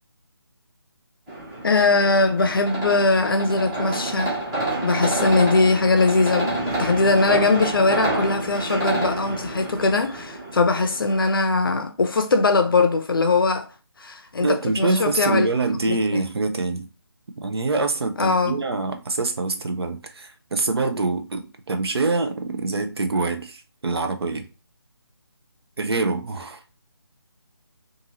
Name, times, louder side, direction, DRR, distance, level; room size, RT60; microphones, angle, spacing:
sound 1, 1.3-11.4, right 2 dB, 15° right, 0.8 m, -28 dB
voice 1, 1.6-4.4 4.8-13.7 14.0-15.5 15.9-16.2 18.2-18.6, left 3 dB, 55° left, 0.5 m, -21 dB
voice 2, 14.4-16.9 17.4-24.5 25.8-26.6, right 3 dB, 70° right, 0.6 m, -25 dB
2.6 x 2.6 x 2.8 m
figure-of-eight pair, 160°, 14 cm